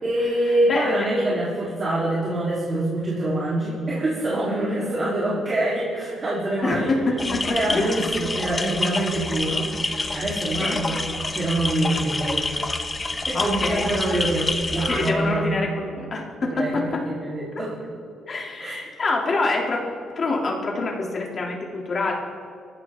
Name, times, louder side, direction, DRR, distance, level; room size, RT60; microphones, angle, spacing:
voice 1, 0.0-6.9 7.3-9.7 10.1-11.0 11.3-12.5 13.3-15.5 16.5-17.7 18.6-18.9, right 1 dB, 35° right, -7 dB, 3.9 m, -25 dB
voice 2, 6.6-7.9 10.6-10.8 13.3-13.9 14.9-17.0 18.3-19.8 20.1-22.1, left 3 dB, 45° left, -1 dB, 3.2 m, -26 dB
sound 1, 7.2-15.1, left 3 dB, 25° left, 1.3 m, -28 dB
23.5 x 14.5 x 3.9 m, 2.3 s
cardioid pair, 90°, 0 cm